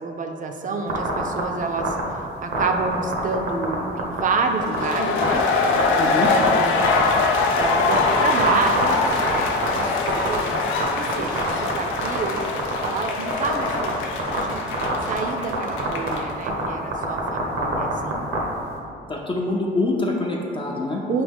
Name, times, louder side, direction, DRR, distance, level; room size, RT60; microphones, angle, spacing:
voice 1, 0.0-2.0 2.4-5.4 5.7-6.1 6.5-6.9 7.5-9.2 9.6-14.6 15.1-18.3 21.1-21.2, right 4 dB, 40° right, 4 dB, 0.5 m, -28 dB
sound 1, 0.9-1.4 1.8-2.0 2.5-3.7 4.0-4.2 4.6-4.8 5.2-5.3 5.7-6.4 6.8-9.8 10.1-10.8 11.1-11.7 12.0-12.9 13.3-13.9 14.2-14.4 14.7-15.2 15.5-15.6 15.8-16.1 16.5-16.7 16.9-18.4, right 4 dB, 85° right, 0.9 m, -24 dB
sound 2, 4.7-16.3, left 4 dB, 90° left, 0.5 m, -24 dB
voice 2, 6.0-6.3 19.1-21.0, left 2 dB, 25° left, -1 dB, 0.4 m, -25 dB
5.3 x 2.8 x 3.5 m, 2.6 s
cardioid pair, 90°, 20 cm